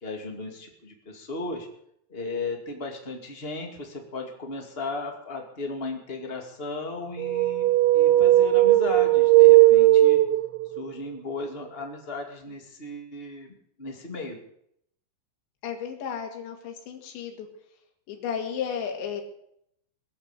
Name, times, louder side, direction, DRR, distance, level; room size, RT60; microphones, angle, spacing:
voice 1, 0.0-1.7 2.1-10.2 10.7-13.5 13.8-14.4, left 3 dB, 40° left, 3 dB, 0.8 m, -35 dB
sound 1, 7.2-10.8, right 16 dB, 80° right, 3.2 m, -17 dB
voice 2, 15.6-17.5 18.1-19.2, left 7 dB, 70° left, 2 dB, 4.5 m, -33 dB
21.5 x 8.1 x 8.3 m, 0.73 s
omnidirectional pair, 5.6 m